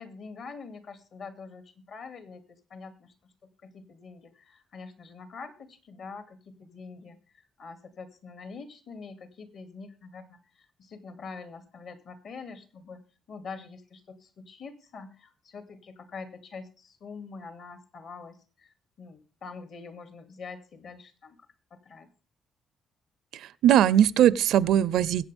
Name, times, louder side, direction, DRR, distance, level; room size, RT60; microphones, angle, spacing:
voice 1, 0.0-13.0 13.3-22.1, left 4 dB, 60° left, 9 dB, 2.6 m, -45 dB
voice 2, 23.3-25.2, right 10 dB, 80° right, 20 dB, 0.6 m, -20 dB
22.0 x 8.6 x 3.5 m, 0.34 s
cardioid pair, 115°, 0 cm